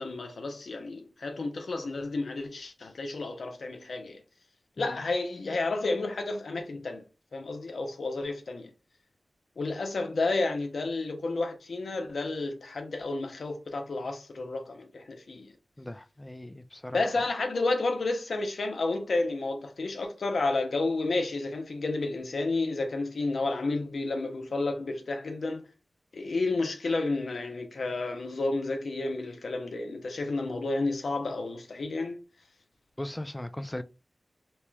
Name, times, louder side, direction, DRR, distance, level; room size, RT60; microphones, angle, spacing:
voice 1, 0.0-4.2 4.8-7.0 7.3-8.7 9.6-15.5 16.9-25.6 26.1-32.2, left 3 dB, 85° left, 0.7 m, -31 dB
voice 2, 15.8-17.2 33.0-33.8, left 1 dB, 20° left, 0.4 m, -38 dB
3.1 x 3.0 x 2.2 m
cardioid pair, 40°, 0 cm